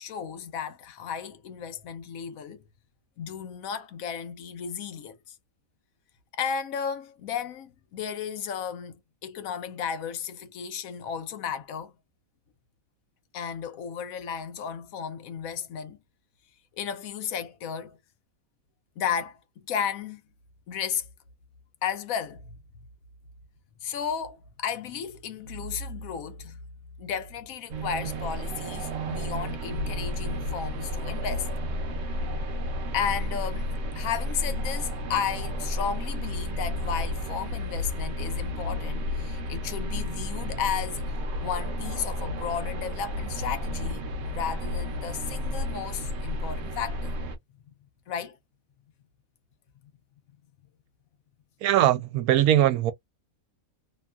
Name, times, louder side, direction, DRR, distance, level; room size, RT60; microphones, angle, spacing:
voice 1, 0.0-2.6 3.2-5.3 6.3-11.9 13.3-16.0 16.8-18.0 19.0-20.2 20.7-21.0 21.8-22.6 23.8-26.6 27.0-31.5 32.9-41.1 41.4-44.0 44.3-47.2 48.1-48.4, left 7 dB, 75° left, 1.0 m, -34 dB
sound 1, 27.7-47.4, left 1 dB, 60° right, 0.8 m, -32 dB
voice 2, 51.6-52.9, right 12 dB, 80° right, 1.0 m, -21 dB
2.9 x 2.2 x 2.4 m
omnidirectional pair, 1.5 m